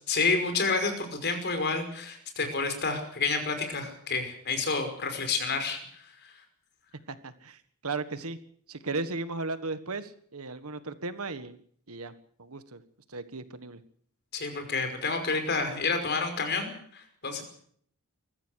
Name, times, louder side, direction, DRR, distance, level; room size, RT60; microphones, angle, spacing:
voice 1, 0.1-6.3 14.3-17.4, left 4 dB, 50° left, 6 dB, 5.5 m, -29 dB
voice 2, 7.1-8.4 8.7-11.6 11.9-12.1 12.4-12.8 13.1-13.8, right 3 dB, 75° right, 11 dB, 1.6 m, -36 dB
22.0 x 15.0 x 8.3 m, 0.63 s
head